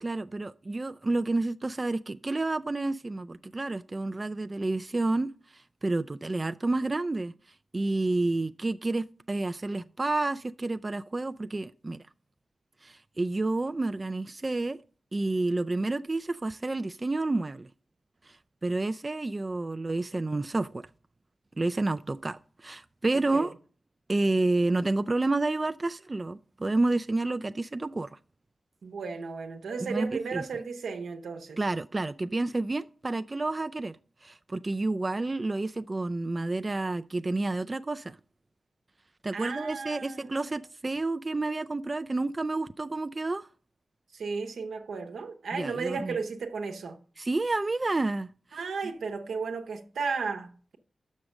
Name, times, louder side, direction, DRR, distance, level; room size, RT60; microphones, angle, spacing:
voice 1, 0.0-7.3 7.7-12.0 12.8-14.8 15.1-17.7 18.2-20.8 21.6-23.5 24.1-28.2 29.8-30.5 31.6-34.0 34.2-38.2 39.2-43.5 45.5-46.2 47.2-48.7, right 2 dB, 35° right, 0.3 m, -30 dB
voice 2, 28.8-31.6 39.3-40.5 44.1-47.0 48.5-50.8, right 5 dB, 90° right, 0.9 m, -34 dB
6.3 x 6.0 x 6.4 m
cardioid pair, 45°, 0 cm